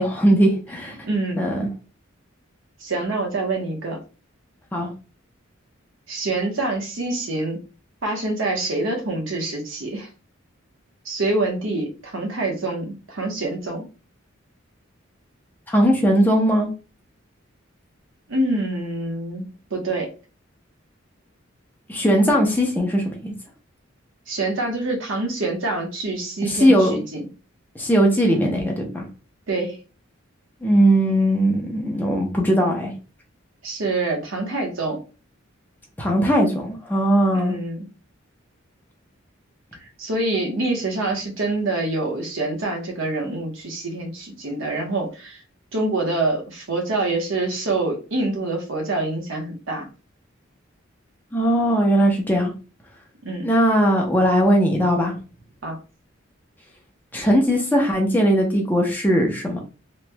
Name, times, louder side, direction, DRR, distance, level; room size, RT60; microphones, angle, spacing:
voice 1, 0.0-1.0 1.4-1.7 4.7-4.9 15.7-16.7 21.9-23.3 26.4-27.0 27.7-29.0 30.6-32.9 36.0-37.5 51.3-52.5 53.4-55.1 57.1-59.6, equal, 10° left, 0 dB, 0.7 m, -19 dB
voice 2, 1.0-1.5 2.8-4.0 6.1-7.6 8.0-10.1 11.0-13.8 18.3-20.1 24.3-27.3 29.5-29.8 33.6-35.0 37.3-37.9 39.8-45.4 45.7-49.9 53.2-53.5 55.6-55.8, right 2 dB, 70° right, 1 dB, 1.0 m, -26 dB
3.0 x 3.0 x 2.2 m, 0.33 s
head